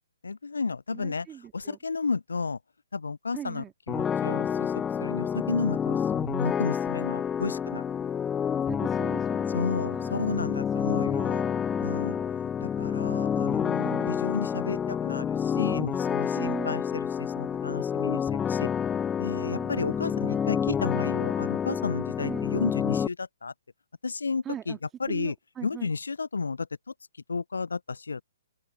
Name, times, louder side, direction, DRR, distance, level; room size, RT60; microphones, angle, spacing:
voice 1, 0.2-1.3 1.5-2.6 2.9-4.7 5.0-7.8 9.5-11.4 11.8-12.2 12.6-18.7 19.2-23.5 24.0-24.7 25.0-25.3 25.6-26.7 27.3-28.2, left 4 dB, 70° left, 0.5 m, -32 dB
voice 2, 0.9-1.8 3.3-3.7 8.6-12.4 13.8-14.2 16.3-16.8 19.4-20.7 22.2-22.5 24.4-25.9, right 10 dB, 15° right, 2.1 m, -41 dB
sound 1, 3.9-23.1, left 8 dB, 15° left, 0.3 m, -28 dB
open air
figure-of-eight pair, 125°, 0 cm